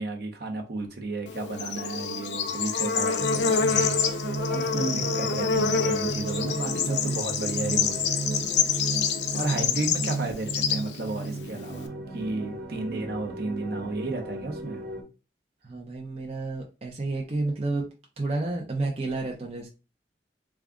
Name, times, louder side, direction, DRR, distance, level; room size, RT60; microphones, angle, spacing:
voice 1, 0.0-8.2 8.7-8.8 9.3-14.8, right 3 dB, 60° right, 3 dB, 0.8 m, -33 dB
Bird / Insect, 1.3-11.9, left 6 dB, 80° left, 0.5 m, -27 dB
sound 1, 3.2-15.0, right 3 dB, 80° right, 1.2 m, -34 dB
voice 2, 15.6-17.9 18.2-19.7, right 2 dB, 35° right, 0 dB, 0.6 m, -30 dB
3.5 x 2.4 x 3.6 m, 0.30 s
head